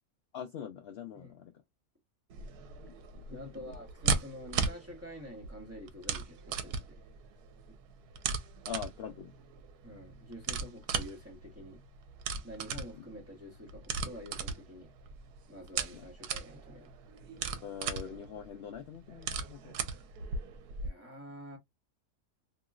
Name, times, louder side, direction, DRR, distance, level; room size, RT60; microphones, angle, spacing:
voice 1, 0.3-1.5 3.1-3.7 8.7-9.3 12.9-13.1 15.9-16.1 17.6-19.7, left 8 dB, 65° left, 0.6 m, -43 dB
sound 1, 2.3-20.9, right 5 dB, 85° right, 1.2 m, -38 dB
voice 2, 3.3-7.0 7.7-7.8 9.8-11.8 12.4-14.9 15.5-16.9 20.8-21.6, equal, 10° right, 1.3 m, -48 dB
3.0 x 3.0 x 2.3 m
omnidirectional pair, 1.6 m